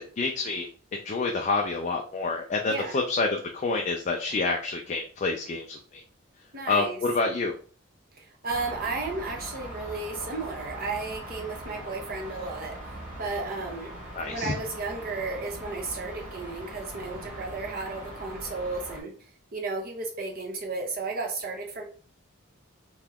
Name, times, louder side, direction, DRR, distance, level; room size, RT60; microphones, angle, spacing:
voice 1, 0.0-6.0 6.7-7.5 14.1-14.5, left 3 dB, 35° left, 2 dB, 0.3 m, -28 dB
voice 2, 2.7-3.0 6.5-7.0 8.2-14.0 14.3-19.1 19.5-21.8, right 3 dB, 45° right, 2 dB, 0.7 m, -34 dB
sound 1, 8.5-19.0, right 1 dB, 5° right, 1.1 m, -41 dB
2.9 x 2.3 x 3.4 m, 0.42 s
head